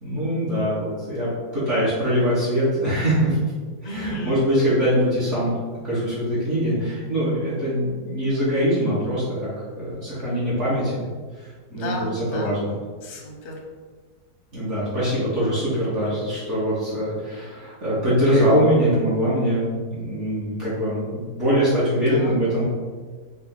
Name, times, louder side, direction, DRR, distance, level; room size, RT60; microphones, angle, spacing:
voice 1, 0.0-3.4 3.8-5.5 5.8-9.5 9.8-11.0 11.4-12.7 14.5-19.6 19.9-22.6, equal, 45° right, -11 dB, 1.4 m, -23 dB
voice 2, 3.8-4.4 11.8-12.6 13.0-13.5 22.1-22.4, left 1 dB, 55° left, 0 dB, 0.8 m, -33 dB
4.0 x 2.6 x 3.6 m, 1.5 s
omnidirectional pair, 1.8 m